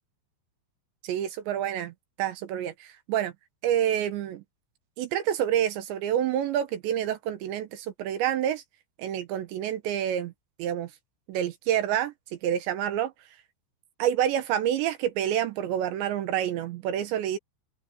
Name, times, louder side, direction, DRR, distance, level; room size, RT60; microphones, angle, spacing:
voice 1, 1.0-1.9 2.2-3.3 3.6-4.4 5.0-8.6 9.0-10.3 10.6-10.9 11.3-12.1 12.4-13.1 14.0-17.4, right 10 dB, 75° right, 2.9 m, -28 dB
open air
omnidirectional pair, 6.0 m